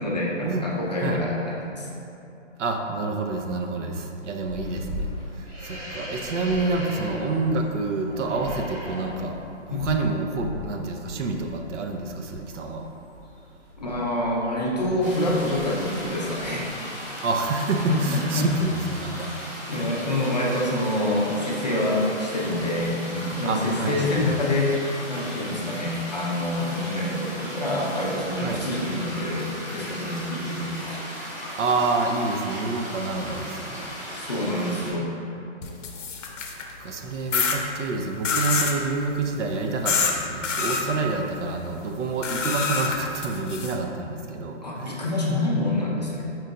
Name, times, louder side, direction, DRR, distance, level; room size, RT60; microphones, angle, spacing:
voice 1, 0.0-1.9 9.7-9.9 13.8-16.7 17.9-18.4 19.7-24.7 25.1-31.0 34.1-35.1 44.6-46.2, left 1 dB, 35° left, -4 dB, 0.4 m, -26 dB
voice 2, 2.6-9.4 9.7-12.9 17.2-19.3 23.4-24.2 28.4-28.6 31.6-34.0 36.5-45.0, right 3 dB, 75° right, 3 dB, 0.6 m, -28 dB
sound 1, 4.4-17.4 17.6-18.2 18.5-19.2, left 1 dB, 35° right, 1.0 m, -39 dB
sound 2, 15.0-34.9, equal, 15° right, 0.5 m, -37 dB
sound 3, 35.6-36.7 37.3-37.6 38.2-38.8 39.9-40.1 40.4-40.8 42.2-43.7, left 5 dB, 80° left, 0.7 m, -26 dB
4.4 x 2.3 x 3.8 m, 2.8 s
hypercardioid pair, 165°, 37 cm